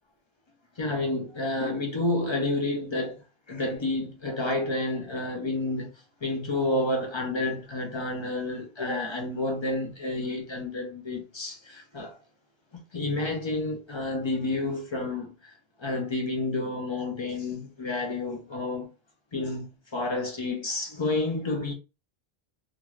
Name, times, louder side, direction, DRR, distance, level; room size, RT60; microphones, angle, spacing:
voice 1, 0.8-3.2 3.5-5.9 6.2-12.2 12.7-15.3 15.8-18.9 19.3-21.7, left 2 dB, 40° left, 0.4 m, -30 dB
2.5 x 2.3 x 3.1 m
omnidirectional pair, 1.1 m